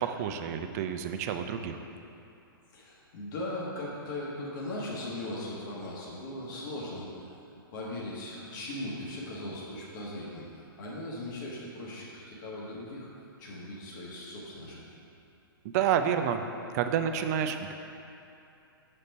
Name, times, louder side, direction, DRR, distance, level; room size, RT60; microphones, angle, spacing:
voice 1, 0.0-1.8 15.6-16.5 16.7-17.7, right 8 dB, 45° right, 7 dB, 0.5 m, -29 dB
voice 2, 2.7-7.2 7.7-13.1 13.4-14.8, left 1 dB, 55° left, -5 dB, 1.6 m, -38 dB
6.5 x 4.3 x 5.3 m, 2.7 s
hypercardioid pair, 120°, 12 cm